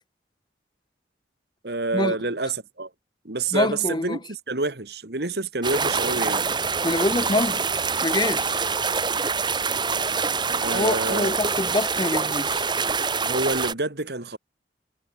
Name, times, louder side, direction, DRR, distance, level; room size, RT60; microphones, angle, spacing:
voice 1, 1.6-2.9 3.2-6.5 10.6-11.4 13.2-14.4, right 3 dB, 60° right, 2.1 m, -28 dB
voice 2, 3.5-4.2 6.8-7.7 8.0-8.7 10.7-12.7, left 2 dB, 25° left, 0.8 m, -25 dB
sound 1, 5.6-13.7, right 5 dB, 25° right, 1.8 m, -25 dB
head